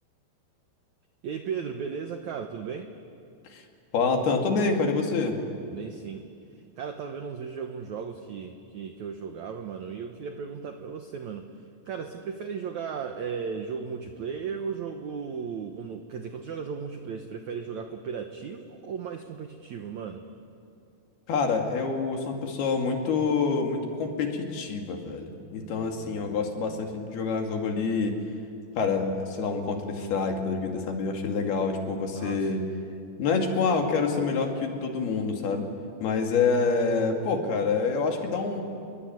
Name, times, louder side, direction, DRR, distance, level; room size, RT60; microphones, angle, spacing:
voice 1, 1.2-2.9 5.7-6.3 6.8-11.5 11.8-20.2 25.6-26.8 32.1-32.7, right 6 dB, 75° right, 6 dB, 1.7 m, -36 dB
voice 2, 3.9-5.4 21.3-28.2 28.8-32.6 33.2-35.7 36.0-38.6, left 4 dB, 65° left, 3 dB, 4.1 m, -27 dB
28.5 x 22.0 x 9.4 m, 2.5 s
omnidirectional pair, 5.0 m